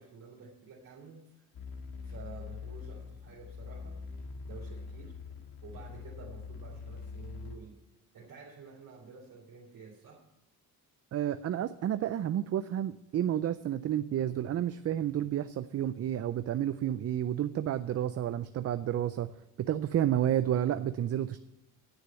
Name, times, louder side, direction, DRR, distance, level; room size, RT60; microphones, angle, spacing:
voice 1, 0.0-1.4 2.0-4.0 4.4-5.2 5.6-7.8 8.1-10.2, right 5 dB, 65° right, -5 dB, 3.0 m, -50 dB
sound 1, 1.5-7.6, left 5 dB, 75° left, 1.6 m, -43 dB
voice 2, 11.1-19.3 19.6-21.4, right 11 dB, 45° right, 12 dB, 0.4 m, -30 dB
9.8 x 6.6 x 9.0 m, 0.91 s
cardioid pair, 120°, 37 cm